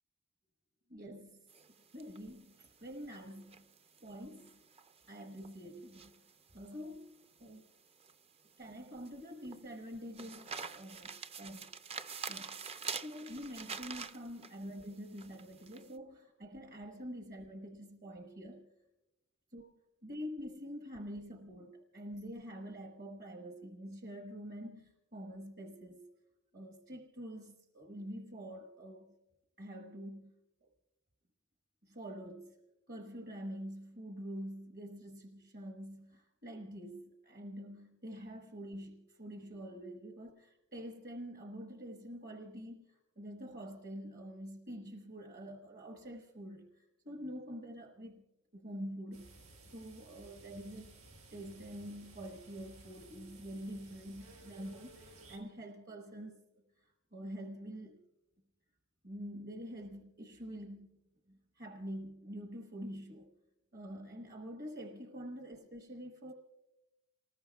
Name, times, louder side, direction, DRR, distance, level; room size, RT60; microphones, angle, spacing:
voice 1, 0.9-1.5 1.9-3.6 4.0-4.6 5.1-6.2 6.5-7.7 8.6-11.6 12.3-12.5 13.0-18.7 19.5-19.7 20.0-26.1 26.5-29.1 29.6-30.3 30.6-30.7 31.8-32.6 32.9-48.2 48.5-49.3 49.7-50.9 51.3-56.4 56.8-58.0 59.0-61.0 61.3-63.3 63.7-66.3, equal, 45° right, 1.2 m, -46 dB
sound 1, 1.5-15.9, right 5 dB, 30° right, 0.5 m, -47 dB
sound 2, 49.1-55.4, right 2 dB, 80° right, 6.1 m, -57 dB
28.5 x 20.0 x 2.3 m
head